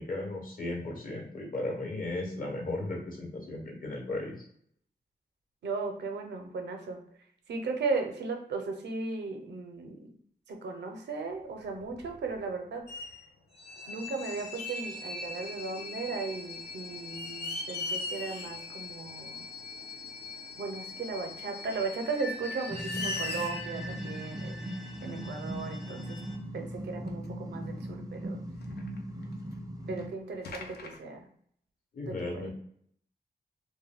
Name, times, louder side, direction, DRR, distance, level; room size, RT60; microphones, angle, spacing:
voice 1, 0.0-4.5 31.9-32.5, left 2 dB, 55° left, -1 dB, 1.0 m, -36 dB
voice 2, 5.6-7.0 7.5-10.1 10.5-13.0 13.9-19.4 20.6-26.2 26.5-28.4 29.9-31.3 32.1-32.5, right 4 dB, 90° right, 4 dB, 0.5 m, -36 dB
sound 1, 11.6-12.5 12.9-13.3 14.6-15.0 16.4-16.5 17.0-18.7 19.1-19.2 20.7-20.8 21.8-21.9 22.4-22.5 22.7-23.8 25.1-25.2 25.9-26.0 26.3-26.4 27.1-27.3 28.6-29.5 30.0-30.1 30.4-31.0, left 3 dB, 75° left, 0.4 m, -39 dB
sound 2, 13.5-26.4, left 2 dB, 35° left, 0.7 m, -42 dB
sound 3, 22.7-30.1, equal, 20° right, 0.3 m, -39 dB
2.2 x 2.1 x 3.3 m, 0.65 s
cardioid pair, 75°, 17 cm